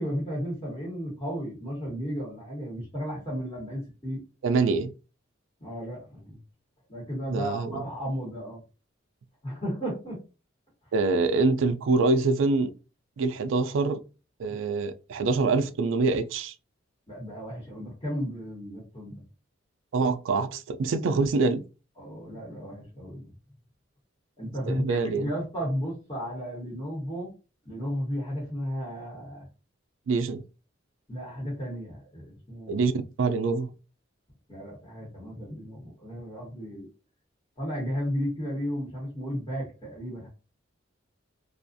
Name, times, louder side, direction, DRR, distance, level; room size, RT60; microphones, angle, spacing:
voice 1, 0.0-4.2 5.6-6.4 6.9-8.6 9.4-10.2 17.1-19.2 22.0-23.3 24.4-27.3 27.6-29.5 31.1-32.8 34.5-36.9 37.6-40.3, equal, 25° left, 1.1 m, -34 dB
voice 2, 4.4-4.9 7.3-7.8 10.9-12.7 13.2-14.0 14.4-16.5 19.9-21.6 24.7-25.3 30.1-30.4 32.7-32.9 33.2-33.7, right 3 dB, 75° right, 0.3 m, -25 dB
2.4 x 2.3 x 2.5 m
head